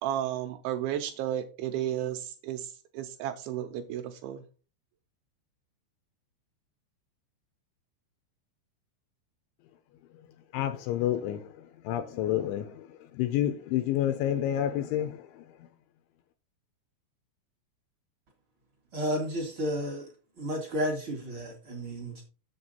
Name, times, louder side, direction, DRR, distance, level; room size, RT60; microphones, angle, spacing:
voice 1, 0.0-4.4, right 11 dB, 85° right, 2.7 m, -33 dB
voice 2, 10.5-15.4, left 11 dB, 80° left, 2.7 m, -29 dB
voice 3, 18.9-20.1 20.4-22.2, equal, 70° right, 1.2 m, -32 dB
7.9 x 7.3 x 4.1 m
omnidirectional pair, 5.8 m